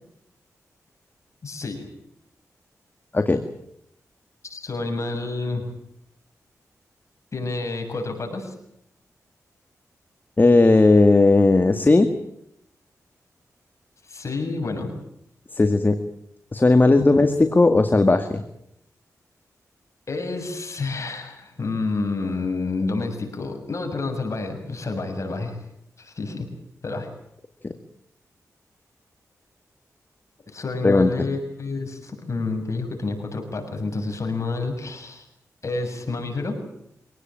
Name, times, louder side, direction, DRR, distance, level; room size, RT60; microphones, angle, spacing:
voice 1, 1.4-1.9 4.4-5.7 7.3-8.5 14.0-15.0 17.0-17.3 20.1-25.6 26.0-26.5 26.8-27.1 30.5-35.2 35.6-36.6, left 3 dB, 50° left, 3 dB, 6.9 m, -29 dB
voice 2, 10.4-12.1 15.6-16.0 16.5-18.4 30.8-31.1, left 2 dB, 30° left, 8 dB, 2.0 m, -16 dB
25.5 x 18.0 x 9.0 m, 0.76 s
cardioid pair, 60°, 6 cm